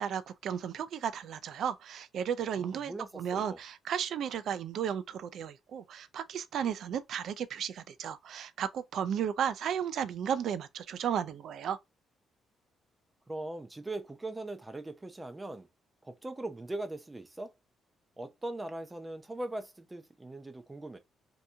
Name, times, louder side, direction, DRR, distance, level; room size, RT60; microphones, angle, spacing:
voice 1, 0.0-11.8, right 8 dB, 70° right, 0.4 m, -34 dB
voice 2, 2.6-3.6 13.3-15.7 16.0-17.5 18.2-21.0, right 2 dB, 15° right, 0.6 m, -40 dB
2.8 x 2.6 x 3.4 m
cardioid pair, 90°, 0 cm